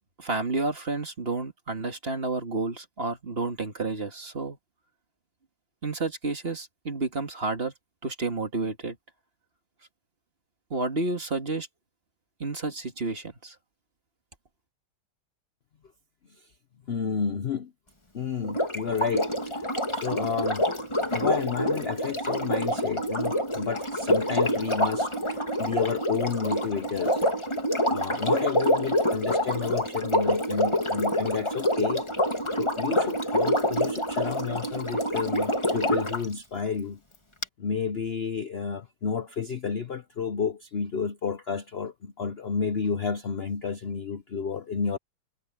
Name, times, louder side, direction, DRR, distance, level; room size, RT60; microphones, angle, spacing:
voice 1, 0.2-4.6 5.8-7.7 8.0-9.0 10.7-11.7 12.4-13.6, right 3 dB, 30° right, 2.1 m, -30 dB
voice 2, 16.9-17.7 18.1-19.3 19.9-20.7 21.1-27.2 27.9-32.0 32.5-37.0 37.6-45.0, left 6 dB, 70° left, 0.5 m, -31 dB
Sink (filling or washing), 18.4-36.2 37.4-37.5, equal, 15° left, 2.5 m, -27 dB
omnidirectional pair, 2.2 m